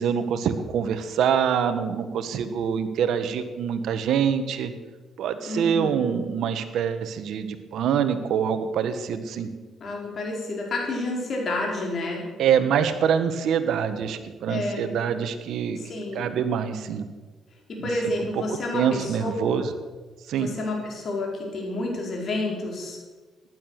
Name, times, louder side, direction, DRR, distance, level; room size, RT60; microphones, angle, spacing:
voice 1, 0.0-4.7 5.2-9.5 12.4-15.8 16.1-17.1 18.7-19.7 20.3-20.5, right 8 dB, 75° right, 10 dB, 1.4 m, -25 dB
voice 2, 5.5-6.2 9.8-12.2 14.5-14.9 15.8-16.3 17.7-19.6 20.4-23.0, left 2 dB, 50° left, -1 dB, 5.0 m, -30 dB
15.0 x 11.0 x 6.5 m, 1.3 s
cardioid pair, 90°, 0 cm